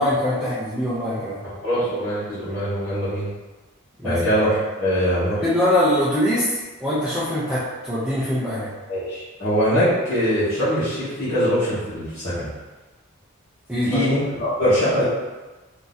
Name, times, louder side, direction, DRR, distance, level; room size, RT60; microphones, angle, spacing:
voice 1, 0.0-1.4 4.0-4.2 5.4-8.7 13.7-14.0, left 1 dB, 5° right, -11 dB, 0.6 m, -23 dB
voice 2, 1.6-3.3 4.0-5.4 8.9-12.5 13.8-15.0, equal, 40° left, -15 dB, 1.4 m, -22 dB
3.7 x 2.8 x 4.0 m, 1.2 s
head